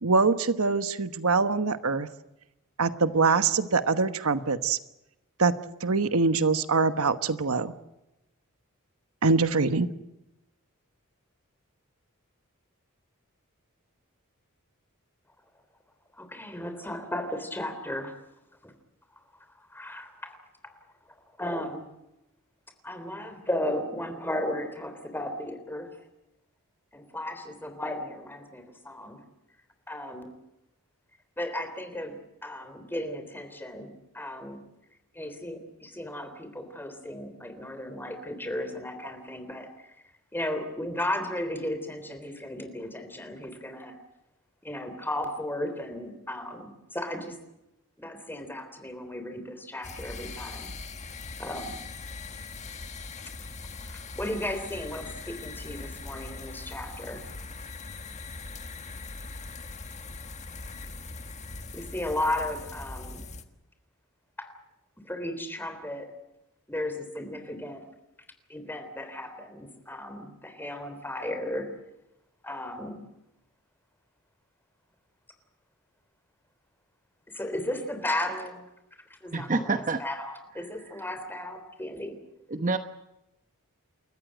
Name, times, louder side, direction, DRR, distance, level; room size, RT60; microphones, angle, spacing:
voice 1, 0.0-2.1 2.8-4.8 5.4-5.5 5.8-7.7 9.2-9.9, right 4 dB, 75° right, 11 dB, 1.1 m, -24 dB
voice 2, 16.1-18.1 18.6-18.7 19.6-20.4 20.6-20.7 21.1-21.9 22.8-25.9 26.9-29.2 29.9-30.3 31.4-34.6 35.1-39.9 40.3-44.0 44.6-47.4 48.0-50.7 51.4-51.8 53.9-57.2 61.7-63.2 64.4-64.5 65.1-66.1 66.7-67.8 68.5-71.7 72.4-73.0 77.3-78.6 79.2-82.1, left 1 dB, 10° left, 7 dB, 3.5 m, -35 dB
sound 1, 49.8-63.4, left 3 dB, 35° left, 1.6 m, -41 dB
voice 3, 79.3-80.0 82.5-82.8, right 3 dB, 35° right, 8 dB, 1.0 m, -27 dB
29.0 x 14.5 x 9.0 m, 0.93 s
head